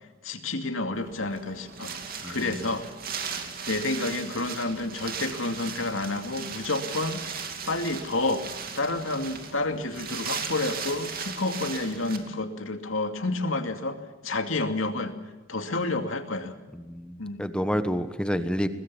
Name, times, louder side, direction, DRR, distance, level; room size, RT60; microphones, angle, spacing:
voice 1, 0.2-2.9 3.7-7.2 7.7-8.4 8.8-15.1 15.5-16.5 17.2-17.4, left 2 dB, 80° left, 6 dB, 2.5 m, -29 dB
Wind, 0.9-12.2, right 6 dB, 45° right, 2.7 m, -37 dB
voice 2, 2.2-2.5 16.7-18.7, equal, 5° left, 10 dB, 1.2 m, -29 dB
22.5 x 21.0 x 7.0 m, 1.2 s
head